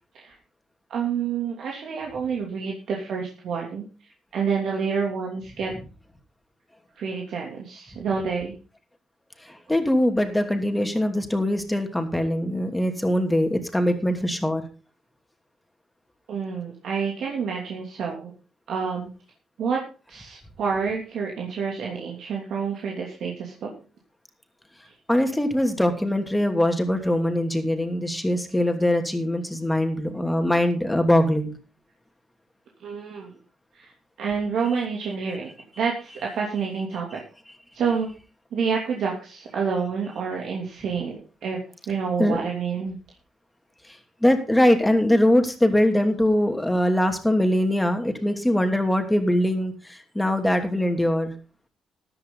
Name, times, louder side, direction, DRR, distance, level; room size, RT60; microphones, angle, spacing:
voice 1, 0.9-5.7 7.0-8.5 16.3-18.3 18.7-19.1 19.6-19.8 20.1-23.7 24.8-24.9 32.8-33.3 33.7-33.9 34.2-35.5 35.8-37.2 37.7-38.1 38.5-41.6 41.9-43.0, right 6 dB, 70° right, -1 dB, 2.9 m, -28 dB
voice 2, 9.5-14.6 25.1-31.5 42.2-42.4 44.2-51.3, left 1 dB, 5° left, 5 dB, 2.7 m, -22 dB
14.0 x 11.0 x 4.0 m, 0.34 s
cardioid pair, 90°, 0 cm